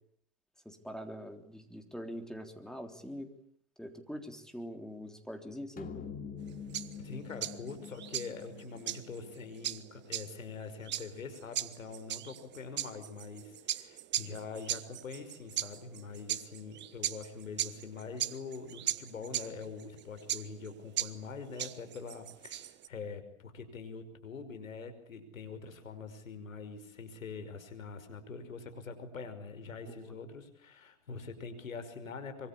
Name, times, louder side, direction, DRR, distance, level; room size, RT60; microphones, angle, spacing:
voice 1, 0.7-3.3 3.8-5.9 29.9-30.2, equal, ahead, 5 dB, 3.6 m, -43 dB
sound 1, 5.8-10.4, left 6 dB, 20° left, 2.6 m, -46 dB
sound 2, 6.4-22.9, right 12 dB, 30° right, 1.3 m, -38 dB
voice 2, 7.0-32.5, left 4 dB, 90° left, 9 dB, 5.7 m, -44 dB
25.5 x 24.0 x 8.7 m, 0.64 s
hypercardioid pair, 110°, 39 cm